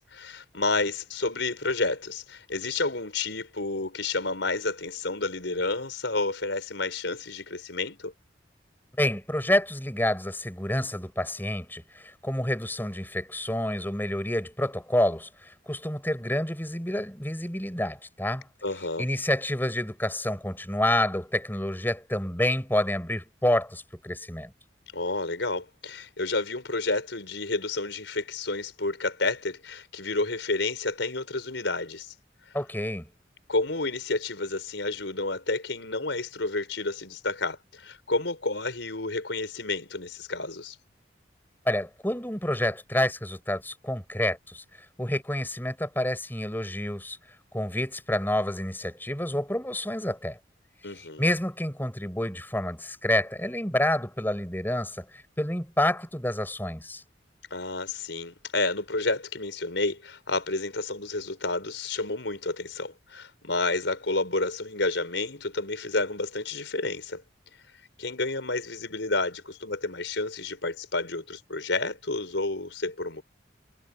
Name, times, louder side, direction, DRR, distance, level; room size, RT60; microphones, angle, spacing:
voice 1, 0.0-8.1 18.6-19.1 24.9-32.1 33.5-40.8 50.8-51.3 57.5-67.2 68.0-73.2, left 3 dB, 80° left, 4.8 m, -30 dB
voice 2, 9.0-18.5 19.0-24.5 32.5-33.1 41.7-44.6 45.0-47.2 47.5-50.4 50.8-57.0, left 1 dB, 10° left, 7.4 m, -28 dB
head